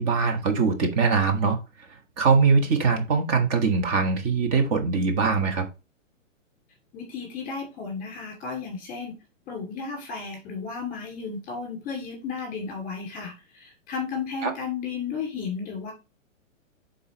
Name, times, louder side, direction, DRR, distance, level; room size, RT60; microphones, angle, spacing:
voice 1, 0.0-1.6 2.2-5.7 14.4-14.5, right 5 dB, 30° right, 1.3 m, -22 dB
voice 2, 6.9-9.1 9.5-15.9, left 5 dB, 20° left, 2.4 m, -33 dB
9.3 x 4.0 x 3.0 m
hypercardioid pair, 140°, 40 cm